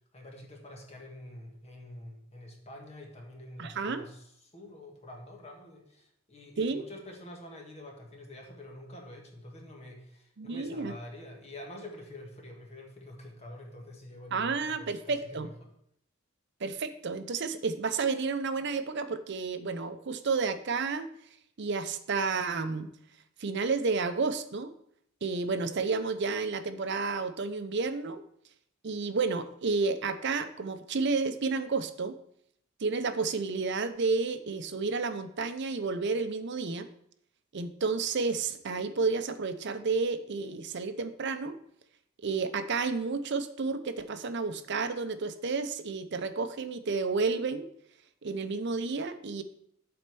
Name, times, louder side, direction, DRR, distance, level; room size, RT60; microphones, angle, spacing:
voice 1, 0.1-15.7, left 1 dB, 30° left, 0 dB, 1.5 m, -47 dB
voice 2, 3.6-4.0 6.6-6.8 10.4-10.9 14.3-15.5 16.6-21.1 21.6-22.9 23.4-24.7 25.2-28.2 28.8-32.2 32.8-36.9 37.5-41.6 42.2-47.7 48.2-49.4, right 4 dB, 60° right, 10 dB, 0.6 m, -31 dB
7.7 x 4.3 x 6.8 m, 0.72 s
head